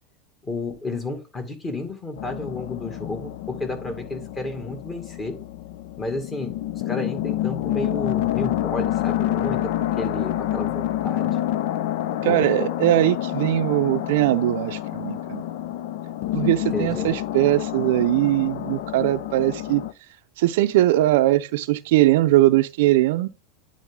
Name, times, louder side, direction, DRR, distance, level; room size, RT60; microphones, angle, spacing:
voice 1, 0.4-5.4 6.0-6.5 6.9-9.7 10.0-11.3 12.3-12.5 16.7-17.1, left 2 dB, 25° left, 2.2 m, -31 dB
sound 1, 2.2-19.9, left 13 dB, 65° left, 0.5 m, -28 dB
voice 2, 12.2-15.4 16.3-19.8 20.4-23.3, right 15 dB, 70° right, 0.5 m, -20 dB
9.9 x 3.7 x 3.8 m
supercardioid pair, 115°, 0 cm